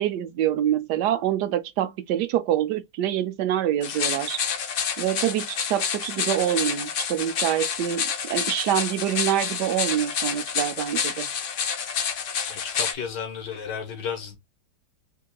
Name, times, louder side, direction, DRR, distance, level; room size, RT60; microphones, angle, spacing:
voice 1, 0.0-4.4 5.0-11.3, right 11 dB, 80° right, 1.2 m, -26 dB
sound 1, 3.8-12.9, left 7 dB, 55° left, 0.9 m, -29 dB
voice 2, 12.5-14.4, left 7 dB, 85° left, 1.9 m, -33 dB
3.8 x 3.6 x 2.2 m
omnidirectional pair, 1.8 m